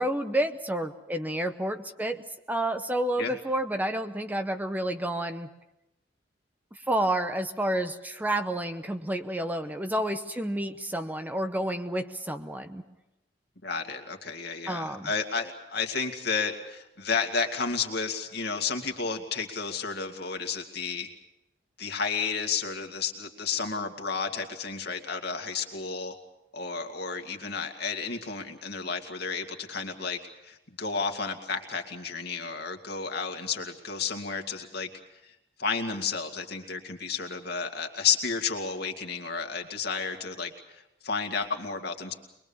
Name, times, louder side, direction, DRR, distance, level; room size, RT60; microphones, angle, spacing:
voice 1, 0.0-5.5 6.9-12.8 14.7-15.1, right 1 dB, 10° right, 8 dB, 0.8 m, -30 dB
voice 2, 13.6-21.1 21.8-26.1 26.5-34.9 35.2-42.1, left 5 dB, 60° left, 5 dB, 2.3 m, -32 dB
23.0 x 22.5 x 7.1 m, 0.91 s
head